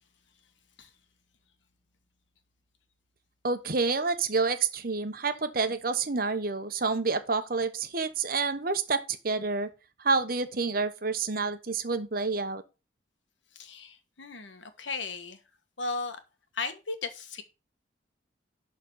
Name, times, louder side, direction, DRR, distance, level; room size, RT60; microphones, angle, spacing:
voice 1, 3.4-9.7 10.0-12.6, right 4 dB, 50° right, 1.0 m, -28 dB
voice 2, 13.5-15.4 15.8-16.2 16.5-17.4, left 3 dB, 85° left, 1.5 m, -36 dB
11.5 x 4.0 x 5.5 m
head